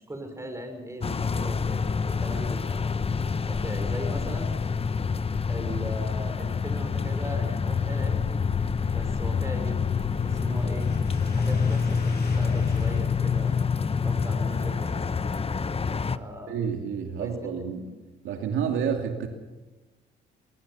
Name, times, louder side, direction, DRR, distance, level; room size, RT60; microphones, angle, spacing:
voice 1, 0.1-2.8 3.5-4.5 5.5-8.4 8.9-9.9 10.2-10.9 11.3-13.6 14.0-15.0 16.1-16.5 17.2-17.3, equal, 15° right, 6 dB, 5.9 m, -38 dB
sound 1, 1.0-16.2, left 5 dB, 30° left, 1.0 m, -27 dB
sound 2, 9.8-15.1, left 3 dB, 55° left, 8.0 m, -47 dB
voice 2, 16.5-17.9 18.2-19.3, right 7 dB, 85° right, 4 dB, 2.7 m, -29 dB
23.0 x 21.0 x 7.2 m, 1.2 s
cardioid pair, 90°, 20 cm